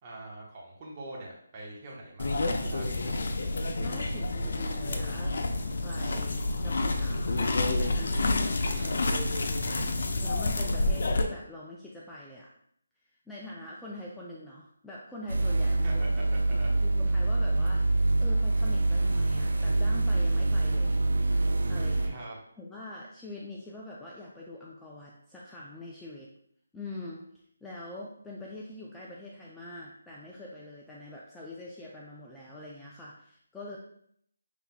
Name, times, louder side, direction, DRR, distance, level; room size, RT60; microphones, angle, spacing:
voice 1, 0.0-3.0 8.5-9.1 9.6-9.9 15.8-16.7 22.1-22.4, right 2 dB, 25° right, -4 dB, 1.0 m, -44 dB
sound 1, 2.2-11.2, left 2 dB, 60° left, 0.6 m, -29 dB
voice 2, 3.8-5.4 5.8-8.5 10.2-12.5 13.3-15.9 16.8-21.0 21.7-22.1 22.6-26.3 26.7-27.2 27.6-33.8, left 1 dB, 5° left, -5 dB, 0.4 m, -44 dB
sound 2, 15.3-22.1, right 2 dB, 85° right, 0.6 m, -25 dB
5.8 x 3.3 x 2.2 m, 0.68 s
figure-of-eight pair, 165°, 0 cm